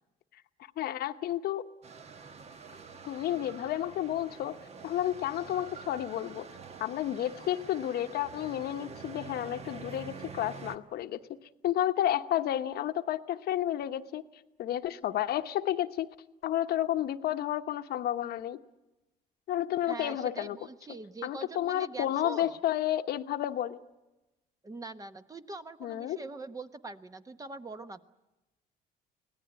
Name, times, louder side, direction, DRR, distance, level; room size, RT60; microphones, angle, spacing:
voice 1, 0.8-1.7 3.0-6.5 6.8-11.2 11.6-14.2 14.6-16.1 16.4-18.6 19.5-20.6 21.2-23.8 25.8-26.2, left 12 dB, 70° left, 8 dB, 1.1 m, -31 dB
sound 1, 1.8-10.8, right 5 dB, 40° right, 1.3 m, -47 dB
voice 2, 19.9-22.6 24.6-28.0, right 3 dB, 20° right, 10 dB, 1.1 m, -43 dB
24.5 x 18.0 x 9.7 m, 1.0 s
cardioid pair, 110°, 17 cm